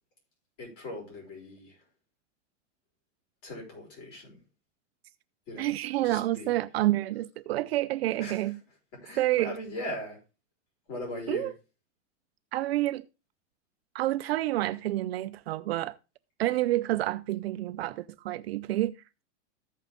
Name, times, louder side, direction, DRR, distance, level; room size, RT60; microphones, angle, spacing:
voice 1, 0.6-1.8 3.4-4.4 5.5-5.8 6.0-6.6 8.2-8.6 9.0-10.2 10.9-11.5, left 1 dB, 40° left, 5.7 m, -39 dB
voice 2, 5.6-8.6 9.2-9.5 11.3-11.5 12.5-13.0 13.9-16.0 16.4-19.0, right 15 dB, 55° right, 0.5 m, -28 dB
14.5 x 5.6 x 3.6 m
supercardioid pair, 165°, 36 cm